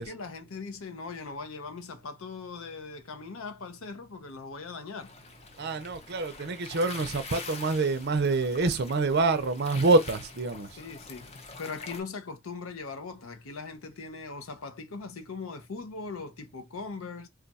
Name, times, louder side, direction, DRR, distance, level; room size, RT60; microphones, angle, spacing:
voice 1, 0.0-5.1 10.8-11.3 11.6-17.3, left 4 dB, 75° left, 0.6 m, -40 dB
sound 1, 5.0-12.0, left 4 dB, 30° left, 0.5 m, -45 dB
voice 2, 5.6-10.7, right 3 dB, 50° right, 0.5 m, -26 dB
2.4 x 2.4 x 4.0 m
head